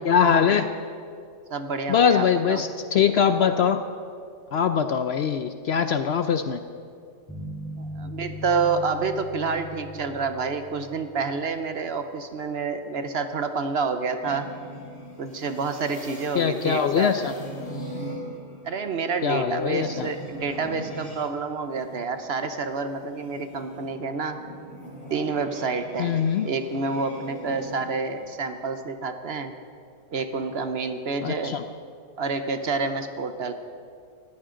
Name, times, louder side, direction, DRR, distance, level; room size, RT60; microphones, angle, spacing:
voice 1, 0.0-0.7 1.9-3.8 4.5-6.6 16.4-17.3 19.2-20.1 26.0-26.5 31.2-31.6, left 7 dB, 65° left, 9 dB, 0.7 m, -22 dB
voice 2, 1.5-2.6 7.8-14.5 15.2-17.1 18.6-24.4 25.1-29.5 30.1-31.6 32.2-33.5, right 4 dB, 55° right, 8 dB, 0.9 m, -28 dB
sound 1, 7.3-11.5, left 1 dB, 10° left, 3.4 m, -38 dB
sound 2, 14.2-21.2 21.6-28.4, equal, 40° left, 3.0 m, -41 dB
19.0 x 14.5 x 3.8 m, 2.3 s
omnidirectional pair, 1.4 m